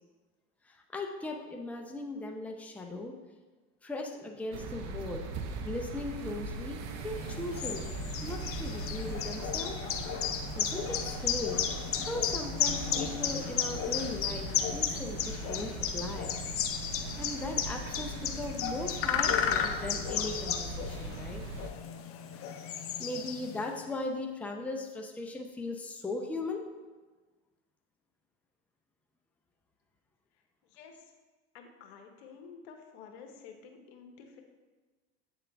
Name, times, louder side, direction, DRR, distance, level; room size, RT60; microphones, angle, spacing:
voice 1, 0.6-3.2 3.8-5.2 5.6-7.8 8.2-9.8 10.6-11.6 12.0-16.3 16.9-21.4 23.0-26.7, left 2 dB, 5° left, 2 dB, 0.5 m, -38 dB
sound 1, 4.5-21.7, right 3 dB, 55° right, 0.7 m, -40 dB
sound 2, 7.2-23.7, left 8 dB, 45° left, 0.6 m, -34 dB
voice 2, 31.5-34.4, left 6 dB, 75° left, 4 dB, 1.0 m, -50 dB
8.0 x 3.8 x 3.4 m, 1.3 s
hypercardioid pair, 90°, 32 cm